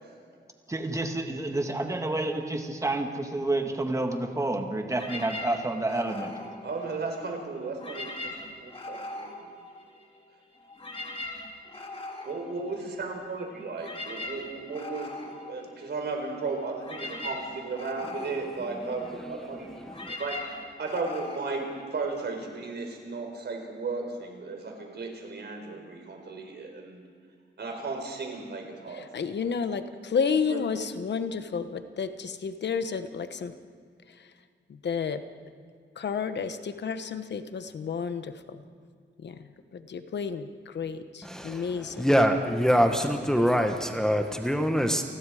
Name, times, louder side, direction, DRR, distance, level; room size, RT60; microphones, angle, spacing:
voice 1, 0.7-6.3, right 2 dB, 15° right, 4 dB, 1.8 m, -29 dB
sound 1, 4.9-7.3 7.7-10.2 10.5-22.5, left 2 dB, 30° left, 2.7 m, -41 dB
voice 2, 6.6-9.6 12.2-19.8 20.2-20.4 20.8-21.6 21.9-27.0 27.6-29.1 30.5-30.9, right 3 dB, 65° right, 3 dB, 4.5 m, -35 dB
voice 3, 19.8-20.1 41.2-45.0, equal, 5° left, 4 dB, 1.2 m, -24 dB
voice 4, 28.9-33.5 34.1-34.3 34.7-35.2 35.9-38.6 39.2-42.1, left 6 dB, 70° left, 10 dB, 1.2 m, -31 dB
29.5 x 20.0 x 5.0 m, 2.1 s
wide cardioid pair, 145°, 19 cm